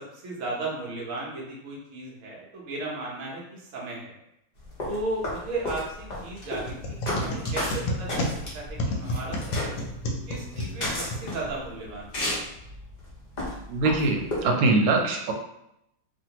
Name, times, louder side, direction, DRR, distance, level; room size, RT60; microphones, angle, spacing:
voice 1, 0.0-4.1 4.9-9.7 10.3-12.3, right 2 dB, 55° right, -4 dB, 1.0 m, -35 dB
sound 1, 4.6-14.4, left 1 dB, 55° left, 0.4 m, -33 dB
sound 2, 6.6-11.8, left 1 dB, 75° left, 1.2 m, -31 dB
voice 2, 13.7-15.3, right 3 dB, 85° right, 2 dB, 1.4 m, -23 dB
3.0 x 2.5 x 2.8 m, 0.81 s
omnidirectional pair, 2.2 m